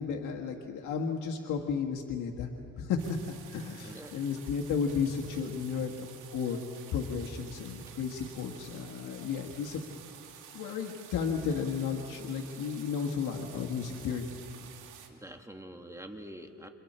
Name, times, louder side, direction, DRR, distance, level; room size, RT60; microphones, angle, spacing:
voice 1, 0.0-2.5 2.8-6.6 6.9-9.8 10.5-14.3 14.6-14.7, left 6 dB, 80° left, 1 dB, 1.6 m, -33 dB
sound 1, 3.0-15.1, right 8 dB, 85° right, 2.6 m, -51 dB
voice 2, 3.8-4.2 15.1-16.7, right 1 dB, 10° right, 4 dB, 1.9 m, -46 dB
29.5 x 28.0 x 4.4 m, 2.8 s
cardioid pair, 90°, 30 cm